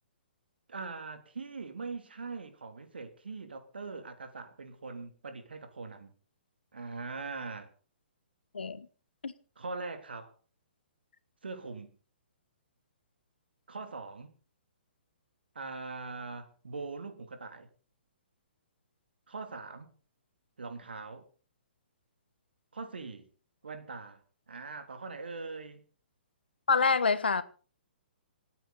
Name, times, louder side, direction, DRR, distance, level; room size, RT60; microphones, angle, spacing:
voice 1, 0.7-6.1 6.7-7.7 9.6-10.3 11.4-11.9 13.7-14.3 15.5-17.7 19.3-19.9 20.6-21.3 22.7-23.3 23.6-25.8, right 4 dB, 75° right, 3.0 m, -41 dB
voice 2, 8.5-8.9 9.2-9.3 26.7-27.4, left 5 dB, 75° left, 1.3 m, -26 dB
27.5 x 9.3 x 4.1 m
figure-of-eight pair, 125°, 6 cm